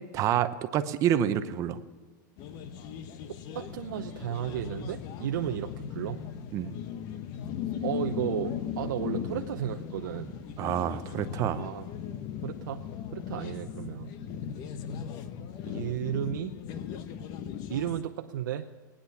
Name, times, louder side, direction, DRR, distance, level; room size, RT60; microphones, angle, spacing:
voice 1, 0.1-1.8 6.5-6.7 10.6-11.6, right 10 dB, 30° right, 10 dB, 0.9 m, -28 dB
sound 1, 2.4-18.0, left 8 dB, 40° left, 1.0 m, -38 dB
voice 2, 3.5-6.2 7.8-10.4 11.5-11.9 12.4-12.8 13.1-14.1 15.6-16.6 17.7-18.7, right 11 dB, 75° right, 4 dB, 0.8 m, -33 dB
19.0 x 10.0 x 7.1 m, 1.4 s
supercardioid pair, 150°, 10 cm